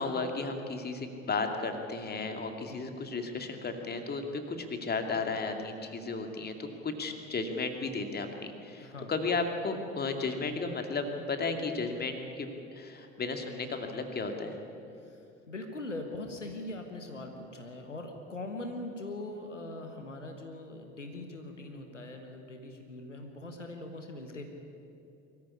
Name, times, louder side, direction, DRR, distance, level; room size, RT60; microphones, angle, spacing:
voice 1, 0.0-14.6, left 3 dB, 25° left, 5 dB, 2.5 m, -34 dB
voice 2, 8.8-9.1 15.1-15.2 15.5-24.4, left 2 dB, 85° left, 4 dB, 1.5 m, -41 dB
23.0 x 14.5 x 9.8 m, 2.7 s
figure-of-eight pair, 60°, 36 cm